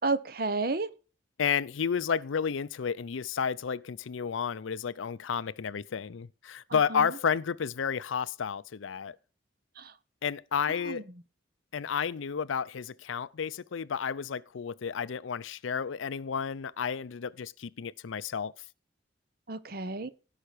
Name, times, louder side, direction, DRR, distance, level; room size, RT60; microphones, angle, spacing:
voice 1, 0.0-0.9 6.7-7.1 9.8-9.9 10.9-11.0 19.5-20.1, right 3 dB, 50° right, 0.8 m, -31 dB
voice 2, 1.4-9.2 10.2-11.1 11.7-18.5, left 6 dB, 90° left, 0.5 m, -31 dB
16.5 x 5.8 x 4.9 m
head